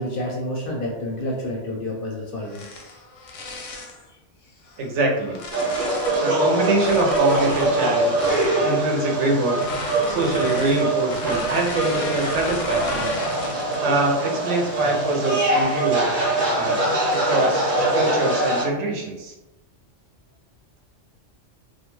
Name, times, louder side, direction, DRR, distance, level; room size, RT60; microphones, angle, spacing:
voice 1, 0.0-2.6 10.4-10.6, left 1 dB, 60° left, -2 dB, 0.6 m, -29 dB
sound 1, 2.4-4.0 4.7-6.3 6.7-8.6 9.5-13.9 14.4-14.7 15.3-15.9, left 3 dB, 85° left, 0.9 m, -34 dB
voice 2, 4.8-5.4 6.2-8.2 8.6-9.6 10.1-13.1 13.8-16.1 16.5-16.8 17.1-19.3, right 2 dB, 75° right, 0 dB, 0.9 m, -24 dB
sound 2, 5.5-18.6, right 2 dB, 50° right, 0.8 m, -23 dB
2.3 x 2.2 x 3.0 m, 1.0 s
omnidirectional pair, 1.3 m